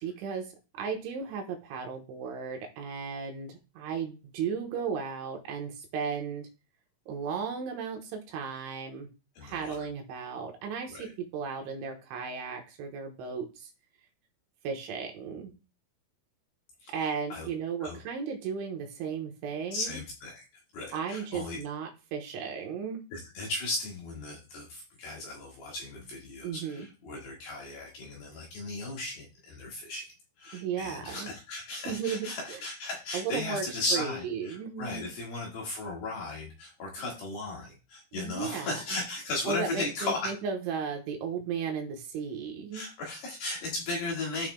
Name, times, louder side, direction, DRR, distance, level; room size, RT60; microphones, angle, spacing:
voice 1, 0.0-6.5 7.1-9.1 9.4-13.7 14.6-15.5 16.9-20.0 20.9-23.0 26.4-26.9 30.5-31.3 31.9-32.6 33.1-33.6 33.9-35.1 38.1-38.8 39.5-42.8, right 6 dB, 75° right, 2 dB, 3.3 m, -35 dB
voice 2, 9.4-9.8 10.9-11.1 16.8-16.9 17.3-17.5 17.8-18.0 19.7-20.4 20.7-21.6 23.1-30.0 30.4-40.3 42.7-44.5, left 2 dB, 60° left, -3 dB, 3.0 m, -36 dB
13.5 x 5.7 x 2.2 m, 0.30 s
omnidirectional pair, 6.0 m